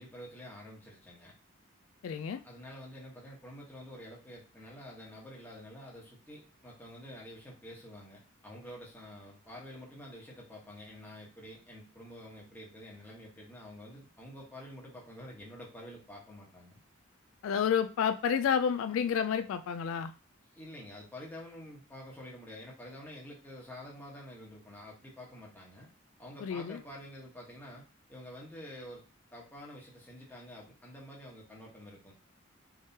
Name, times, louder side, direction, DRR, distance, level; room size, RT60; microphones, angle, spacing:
voice 1, 0.0-1.3 2.4-16.8 20.5-25.9 26.2-27.8 28.1-29.0 29.3-32.1, left 1 dB, 10° left, 1.0 m, -48 dB
voice 2, 2.0-2.4 17.4-20.1 26.4-26.8, left 7 dB, 85° left, 0.3 m, -30 dB
3.6 x 3.2 x 2.7 m
head